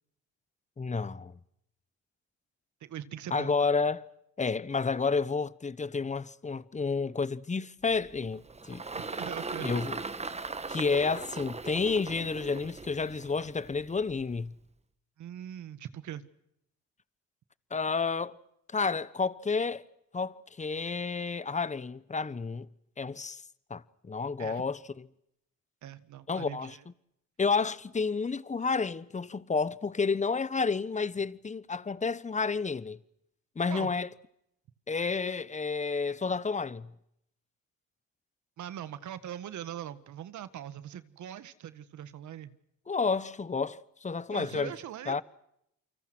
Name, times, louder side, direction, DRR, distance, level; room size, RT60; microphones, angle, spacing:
voice 1, 0.8-1.3 3.3-4.0 4.4-8.8 9.6-10.0 10.7-14.5 17.7-18.4 18.7-19.8 20.1-22.7 23.0-23.4 23.7-24.8 26.3-26.8 27.4-33.0 33.6-34.1 34.9-36.9 42.9-44.7 45.1-45.2, left 4 dB, 25° left, 1.2 m, -30 dB
voice 2, 2.8-3.7 8.9-9.7 15.2-16.2 24.4-24.6 25.8-26.8 33.7-33.9 38.6-42.5 44.3-45.2, right 11 dB, 70° right, 1.8 m, -41 dB
Engine, 7.9-14.5, right 3 dB, 20° right, 1.6 m, -39 dB
29.0 x 25.0 x 6.3 m
cardioid pair, 90°, 30 cm